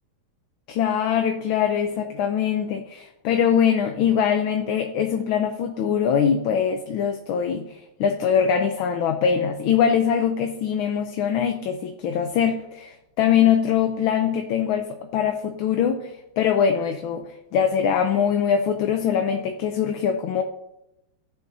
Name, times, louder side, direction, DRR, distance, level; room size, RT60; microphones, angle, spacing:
voice 1, 0.7-17.2 17.5-20.4, left 8 dB, 75° left, 6 dB, 1.4 m, -22 dB
16.5 x 6.5 x 2.7 m, 0.91 s
omnidirectional pair, 2.4 m